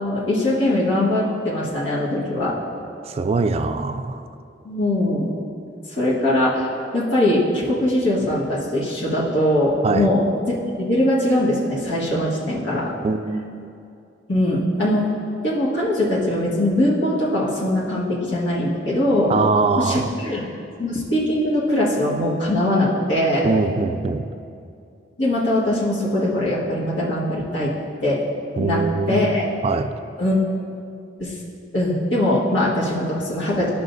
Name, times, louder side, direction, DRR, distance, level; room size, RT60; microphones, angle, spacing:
voice 1, 0.0-2.6 4.6-5.3 6.0-12.9 14.3-15.1 15.4-19.3 19.8-20.5 20.8-23.4 25.2-27.7 28.0-28.2 28.6-29.5 30.2-30.4 31.2-31.3 31.7-33.7, left 1 dB, 80° left, -7 dB, 1.6 m, -21 dB
voice 2, 3.1-4.2 9.8-10.1 13.0-13.5 19.3-20.1 23.4-24.3 28.6-29.3 29.6-29.9, right 4 dB, 35° right, 9 dB, 0.3 m, -22 dB
13.0 x 5.6 x 2.7 m, 2.5 s
head